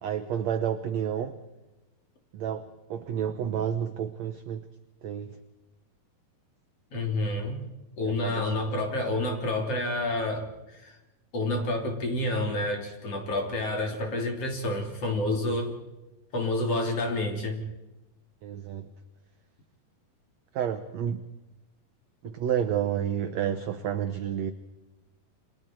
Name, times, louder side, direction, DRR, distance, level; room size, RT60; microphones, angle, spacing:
voice 1, 0.0-1.4 2.3-4.7 5.0-5.4 8.0-8.5 18.4-18.9 20.5-21.3 22.2-24.5, right 9 dB, 75° right, 9 dB, 1.6 m, -30 dB
voice 2, 6.9-7.6 8.0-11.0 11.3-15.7 16.3-17.6, left 2 dB, 40° left, 2 dB, 3.9 m, -29 dB
29.5 x 25.0 x 4.6 m, 1.0 s
omnidirectional pair, 4.3 m